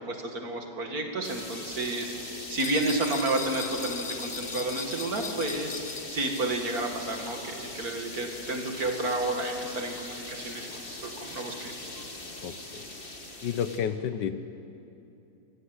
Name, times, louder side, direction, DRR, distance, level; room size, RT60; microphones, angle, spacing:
voice 1, 0.1-5.8 6.1-11.9, right 2 dB, 55° right, 3 dB, 2.7 m, -31 dB
sound 1, 1.2-13.8, left 2 dB, 30° left, 2.4 m, -41 dB
sound 2, 2.6-6.7, left 6 dB, 60° left, 0.4 m, -39 dB
voice 2, 12.4-12.9 13.4-14.4, left 8 dB, 80° left, 11 dB, 1.6 m, -31 dB
25.0 x 18.0 x 8.1 m, 2.9 s
omnidirectional pair, 1.9 m